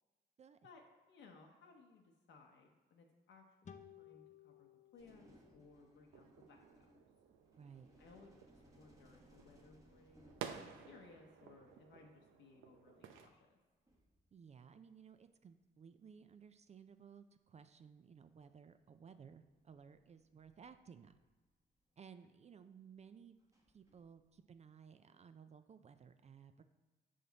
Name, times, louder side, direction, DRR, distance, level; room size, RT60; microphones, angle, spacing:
voice 1, 0.6-7.0 8.0-13.6, left 4 dB, 70° left, 1 dB, 0.8 m, -63 dB
sound 1, 3.6-7.0, left 8 dB, 35° left, 0.6 m, -61 dB
sound 2, 5.0-12.4 13.6-13.7 13.9-15.2 16.3-16.6 17.7-17.8 18.3-18.6 19.5-21.9 23.4-24.6, equal, 15° right, 1.2 m, -68 dB
sound 3, 6.1-13.3, right 8 dB, 90° right, 0.6 m, -54 dB
voice 2, 7.6-7.9 14.3-21.1 22.0-23.4 23.7-26.6, right 7 dB, 35° right, 10 dB, 0.4 m, -58 dB
5.5 x 5.0 x 3.9 m, 1.3 s
cardioid pair, 90°, 20 cm